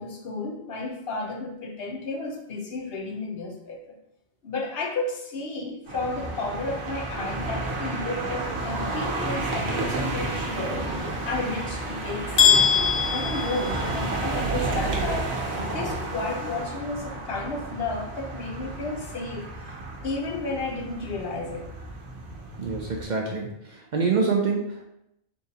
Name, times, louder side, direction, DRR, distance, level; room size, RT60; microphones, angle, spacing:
voice 1, 0.0-3.9 4.4-15.4 15.7-19.8 20.0-21.7, left 3 dB, 70° left, 1 dB, 0.9 m, -32 dB
sound 1, 5.9-23.0, right 2 dB, 85° right, 1.1 m, -31 dB
sound 2, 12.4-14.4, left 7 dB, 45° left, 0.7 m, -22 dB
voice 2, 22.6-24.8, right 4 dB, 55° right, 0 dB, 0.6 m, -26 dB
3.9 x 3.5 x 2.8 m, 0.81 s
omnidirectional pair, 1.1 m